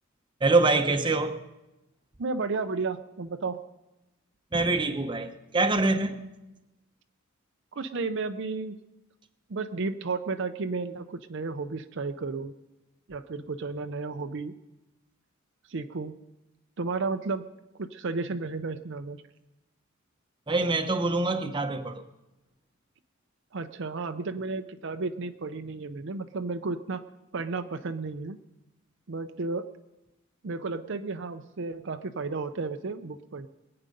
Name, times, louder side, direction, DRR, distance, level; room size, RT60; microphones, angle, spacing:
voice 1, 0.4-1.3 4.5-6.2 20.5-22.0, right 3 dB, 25° right, 0.9 m, -25 dB
voice 2, 2.2-3.6 7.7-8.8 9.5-12.5 13.1-14.6 15.7-16.2 16.8-17.5 17.7-19.2 23.5-27.0 27.3-28.4 29.1-29.6 30.4-33.5, right 3 dB, 60° right, 0.6 m, -33 dB
21.5 x 8.8 x 5.3 m
head